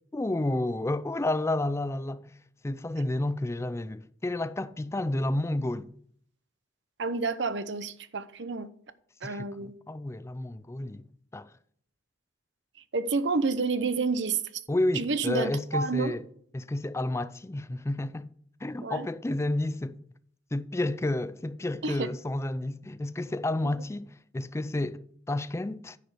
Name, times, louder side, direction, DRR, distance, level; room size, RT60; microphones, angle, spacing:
voice 1, 0.1-2.3 2.6-5.9 9.2-11.1 11.3-11.5 14.7-16.2 16.5-18.3 18.6-20.0 20.5-26.0, left 1 dB, 15° left, 0.4 m, -31 dB
voice 2, 7.0-8.7 9.2-9.7 12.9-14.4 14.9-16.1 18.8-19.1 21.8-22.1, right 4 dB, 65° right, 0.8 m, -29 dB
9.7 x 5.1 x 6.6 m
head